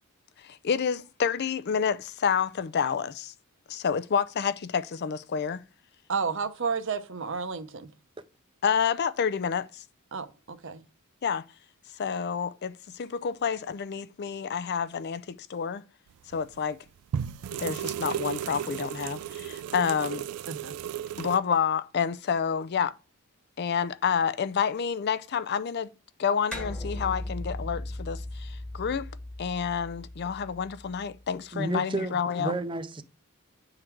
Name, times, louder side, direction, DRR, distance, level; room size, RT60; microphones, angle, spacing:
voice 1, 0.4-3.3 3.7-5.6 8.6-9.8 11.2-11.4 12.0-15.8 16.3-16.8 17.6-20.2 21.2-22.9 23.6-25.9 26.2-29.1 29.4-32.5, left 7 dB, 50° left, 0.4 m, -29 dB
voice 2, 6.1-7.9 10.1-10.8 20.5-20.7, right 5 dB, 55° right, 0.7 m, -32 dB
sound 1, 16.3-16.6 17.1-21.4, right 9 dB, 80° right, 0.3 m, -34 dB
sound 2, 26.5-31.3, left 1 dB, 5° left, 1.1 m, -38 dB
voice 3, 31.5-33.0, right 2 dB, 20° right, 0.5 m, -31 dB
8.8 x 3.8 x 4.5 m
head